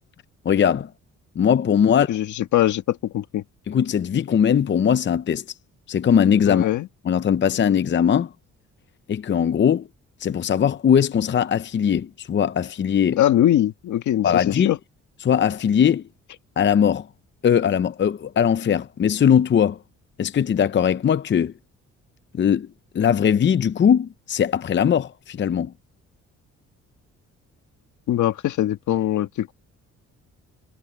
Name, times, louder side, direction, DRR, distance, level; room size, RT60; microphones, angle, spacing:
voice 1, 0.4-0.9 1.4-2.2 3.7-5.4 5.9-6.7 7.1-8.3 9.1-9.9 10.2-13.2 14.2-14.7 15.2-16.0 16.6-17.1 17.4-19.8 20.2-21.5 22.3-22.7 22.9-25.7, left 8 dB, 40° left, 0.7 m, -20 dB
voice 2, 2.1-3.4 6.4-6.9 13.2-14.8 28.1-29.5, left 12 dB, 75° left, 1.8 m, -22 dB
cardioid pair, 90°, 30 cm